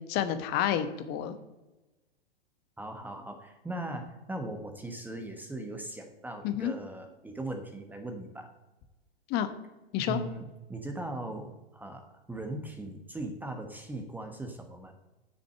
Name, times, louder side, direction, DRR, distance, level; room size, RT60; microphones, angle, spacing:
voice 1, 0.0-1.4 6.4-6.7 9.3-9.5 9.9-10.2, left 10 dB, 30° left, 10 dB, 1.1 m, -29 dB
voice 2, 2.8-8.5 10.1-14.9, right 2 dB, 5° right, 4 dB, 1.1 m, -39 dB
8.1 x 6.7 x 7.6 m, 1.1 s
figure-of-eight pair, 105°, 31 cm